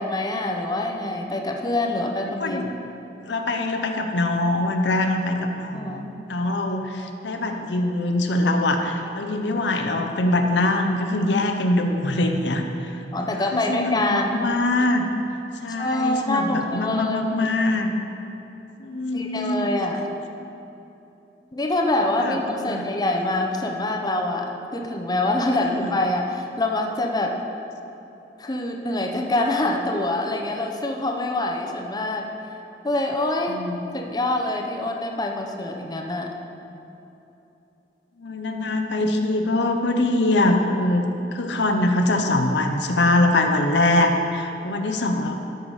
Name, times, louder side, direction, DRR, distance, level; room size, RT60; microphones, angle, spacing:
voice 1, 0.0-2.6 5.7-6.1 13.1-14.5 15.7-17.5 19.1-20.1 21.5-27.4 28.4-32.3 32.8-33.6 33.9-36.3, left 2 dB, 25° left, 1 dB, 0.7 m, -25 dB
voice 2, 2.4-2.7 3.3-15.0 15.6-17.9 18.8-19.7 22.2-22.8 25.5-25.9 33.5-33.8 38.2-45.3, left 2 dB, 75° left, 4 dB, 0.7 m, -23 dB
13.0 x 5.7 x 4.8 m, 3.0 s
head